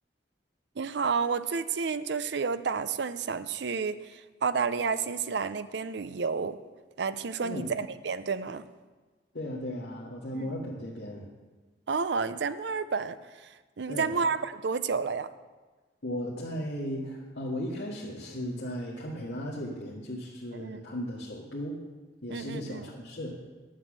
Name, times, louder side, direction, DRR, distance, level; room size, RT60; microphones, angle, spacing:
voice 1, 0.8-6.6 7.0-8.7 10.4-10.5 11.9-15.3 20.5-20.8 22.3-22.8, right 5 dB, 70° right, 13 dB, 0.5 m, -31 dB
voice 2, 9.3-11.3 13.9-14.1 16.0-21.8 22.2-23.4, equal, 80° left, -6 dB, 1.8 m, -36 dB
10.5 x 7.5 x 7.4 m, 1.3 s
head